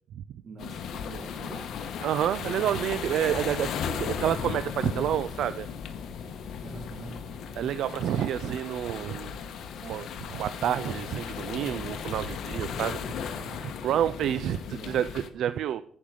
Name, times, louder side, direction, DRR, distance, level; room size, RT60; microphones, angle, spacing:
voice 1, 0.4-1.8 6.6-7.3 12.8-13.1 14.7-15.0, right 3 dB, 55° right, 5 dB, 2.1 m, -44 dB
sound 1, 0.6-15.3, left 7 dB, 75° left, 1.0 m, -36 dB
voice 2, 2.0-5.7 7.6-9.4 9.8-13.0 13.4-15.8, right 11 dB, 75° right, 14 dB, 0.3 m, -29 dB
10.0 x 5.3 x 6.3 m, 0.66 s
cardioid pair, 90°, 0 cm